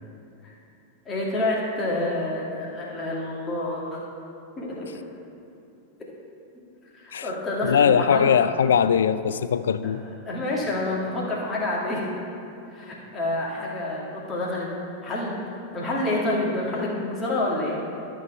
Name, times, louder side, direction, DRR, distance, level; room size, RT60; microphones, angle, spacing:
voice 1, 1.1-4.0 4.6-4.9 6.9-8.3 9.5-12.2 12.7-14.7 15.0-15.4 15.7-17.8, left 2 dB, 20° left, -4 dB, 2.0 m, -28 dB
voice 2, 7.6-10.0, left 7 dB, 65° left, 13 dB, 0.3 m, -20 dB
12.5 x 4.5 x 5.6 m, 2.7 s
figure-of-eight pair, 90°, 0 cm